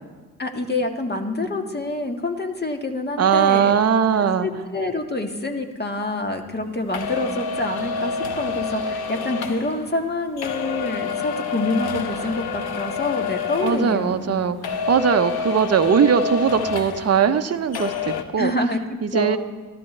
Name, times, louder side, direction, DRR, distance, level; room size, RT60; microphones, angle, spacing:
voice 1, 0.4-3.7 4.4-14.3 18.4-18.8 19.1-19.4, left 2 dB, 25° left, 4 dB, 1.9 m, -26 dB
voice 2, 3.2-4.5 13.6-18.5 19.0-19.4, right 7 dB, 35° right, 8 dB, 0.9 m, -20 dB
sound 1, 6.9-14.4 14.6-17.5 17.7-18.2, left 5 dB, 60° left, 1.1 m, -28 dB
14.0 x 12.5 x 3.4 m, 1.3 s
hypercardioid pair, 45°, 43 cm